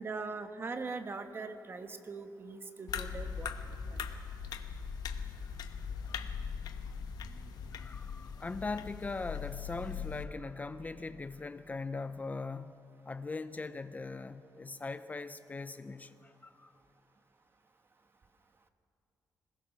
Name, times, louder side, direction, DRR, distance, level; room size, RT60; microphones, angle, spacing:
voice 1, 0.0-3.5 3.9-4.0, right 4 dB, 35° right, 1.2 m, -41 dB
sound 1, 2.9-10.2, left 6 dB, 90° left, 1.0 m, -40 dB
voice 2, 7.7-16.8, left 3 dB, 25° left, 0.5 m, -41 dB
21.5 x 20.5 x 5.9 m
cardioid pair, 115°, 7 cm